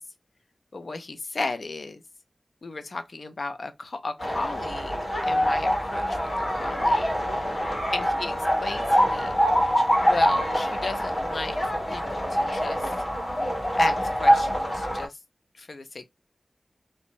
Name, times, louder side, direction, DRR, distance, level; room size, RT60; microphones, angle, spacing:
voice 1, 0.7-2.0 2.6-6.2 6.5-7.6 7.9-9.4 10.0-12.9 13.8-15.2 15.5-16.1, left 3 dB, 75° left, 0.5 m, -35 dB
sound 1, 4.2-15.1, equal, 50° left, 1.4 m, -24 dB
2.5 x 2.2 x 2.9 m
wide cardioid pair, 55°, 0 cm